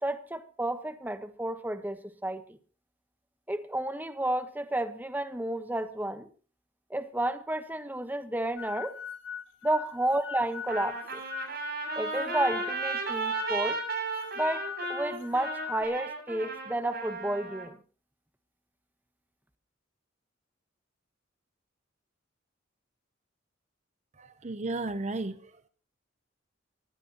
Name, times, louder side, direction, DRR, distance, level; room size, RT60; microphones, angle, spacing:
voice 1, 0.0-2.4 3.5-6.3 6.9-9.0 9.6-11.2 11.9-13.8 14.4-17.8, right 1 dB, 10° right, 1.2 m, -31 dB
sound 1, 8.6-15.8, left 8 dB, 85° left, 4.8 m, -40 dB
Trumpet, 10.7-17.7, right 4 dB, 55° right, 7.7 m, -34 dB
voice 2, 24.2-25.5, right 2 dB, 40° right, 0.8 m, -34 dB
22.0 x 15.5 x 3.0 m
head